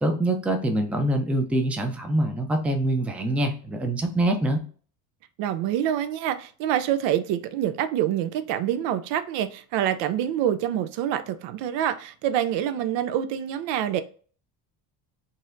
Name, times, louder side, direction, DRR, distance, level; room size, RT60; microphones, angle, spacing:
voice 1, 0.0-4.6, right 1 dB, 5° right, 0.4 m, -24 dB
voice 2, 5.4-14.0, right 11 dB, 70° right, 0.5 m, -26 dB
4.0 x 2.5 x 2.5 m
supercardioid pair, 95°, 45 cm